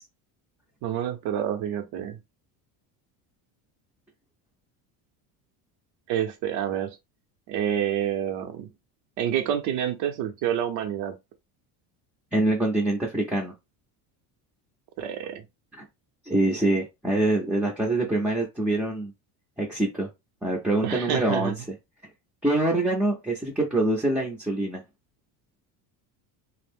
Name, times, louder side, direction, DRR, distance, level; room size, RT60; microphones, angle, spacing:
voice 1, 0.8-2.2 6.1-7.0 7.5-8.7 9.2-11.2 15.0-15.4 20.8-21.6, right 10 dB, 75° right, 0.7 m, -28 dB
voice 2, 12.3-13.5 15.8-15.9 16.2-19.1 19.6-20.1 20.4-21.5 22.4-24.8, right 2 dB, 5° right, 0.4 m, -25 dB
2.5 x 2.0 x 3.4 m
cardioid pair, 130°, 43 cm